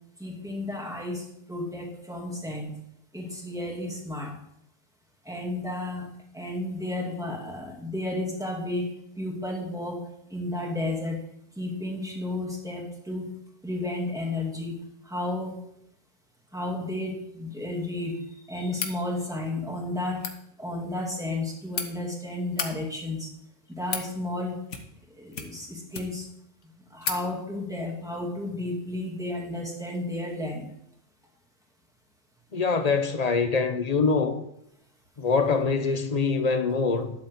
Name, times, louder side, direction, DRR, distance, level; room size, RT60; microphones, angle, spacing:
voice 1, 0.2-2.8 3.1-4.4 5.2-6.1 6.3-8.9 9.2-10.0 10.3-11.2 11.6-13.3 13.6-14.8 15.0-15.6 16.5-20.2 20.6-23.3 23.7-24.6 25.2-26.3 26.9-30.7, left 1 dB, 5° right, 2.3 m, -32 dB
sound 1, 18.7-19.0 20.1-20.4 21.3-21.9 22.4-22.7 23.5-24.1 24.7-25.0 25.3-26.3 26.6-26.7 27.0-27.2, left 5 dB, 80° left, 1.5 m, -33 dB
voice 2, 32.5-34.4 35.2-37.1, left 4 dB, 35° left, 0.9 m, -24 dB
12.0 x 4.2 x 8.1 m
omnidirectional pair, 1.2 m